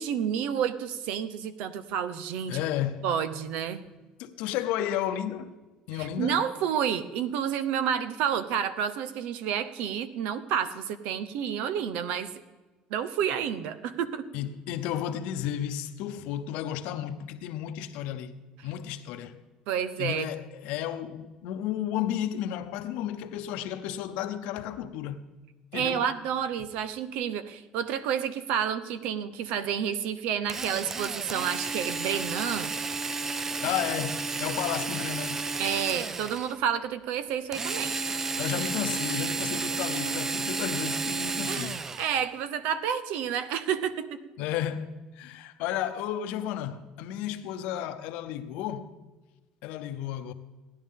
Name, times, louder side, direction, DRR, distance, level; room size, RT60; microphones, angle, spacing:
voice 1, 0.0-2.6 3.0-3.8 6.0-12.4 12.9-14.3 19.7-20.3 25.7-32.7 35.6-38.2 41.5-44.2, right 8 dB, 75° right, 0.8 m, -30 dB
voice 2, 2.5-3.1 4.2-5.5 5.9-6.4 14.3-18.3 18.6-19.4 20.0-25.2 25.7-26.0 33.6-35.5 38.4-41.8 44.4-48.9 49.6-50.3, left 11 dB, 80° left, 0.9 m, -33 dB
Drill, 30.5-36.6 37.5-42.2, right 4 dB, 20° right, 0.4 m, -32 dB
16.5 x 10.5 x 3.7 m
cardioid pair, 135°, 2 cm